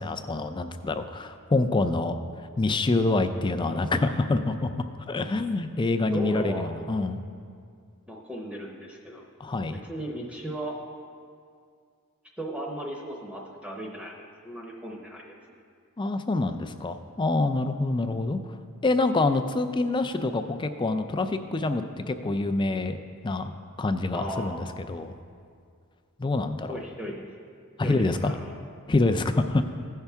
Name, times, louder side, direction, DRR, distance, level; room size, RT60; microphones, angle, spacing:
voice 1, 0.0-2.2 2.6-4.7 5.1-7.2 9.4-9.8 16.0-18.4 18.8-23.0 23.2-25.1 26.2-26.8 27.8-28.3 28.9-29.6, left 2 dB, 20° left, 8 dB, 0.4 m, -26 dB
voice 2, 6.0-6.7 8.1-9.2 9.7-10.8 12.4-15.3 24.1-24.7 26.7-27.3 27.8-28.5, right 1 dB, 5° right, -2 dB, 0.8 m, -36 dB
15.5 x 5.6 x 3.5 m, 2.3 s
head